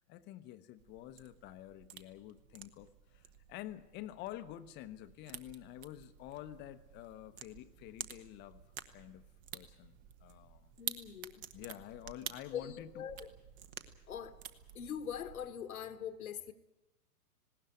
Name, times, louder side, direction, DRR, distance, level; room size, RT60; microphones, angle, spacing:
voice 1, 0.1-8.6 8.9-9.2 9.5-10.7 11.5-13.0, left 13 dB, 20° left, 0.9 m, -49 dB
sound 1, 0.8-15.5, right 10 dB, 35° right, 1.4 m, -50 dB
voice 2, 10.8-11.5 12.5-13.3 14.1-14.4 14.7-16.5, left 8 dB, 60° left, 1.5 m, -42 dB
19.5 x 17.5 x 9.6 m
figure-of-eight pair, 110°, 47 cm